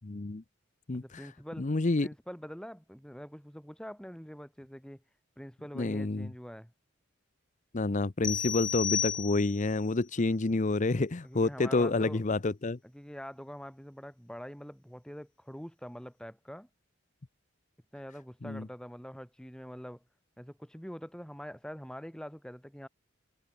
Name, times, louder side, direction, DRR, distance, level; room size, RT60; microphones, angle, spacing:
voice 1, 0.0-0.4 0.9-1.0 1.6-2.1 5.8-6.3 7.7-12.8 18.4-18.7, left 3 dB, 40° left, 0.7 m, -28 dB
voice 2, 0.9-1.7 2.0-5.0 5.4-6.7 11.2-12.2 12.8-16.7 17.9-20.0 20.4-22.9, equal, 5° left, 2.9 m, -45 dB
sound 1, 8.2-9.8, left 8 dB, 25° left, 0.4 m, -32 dB
head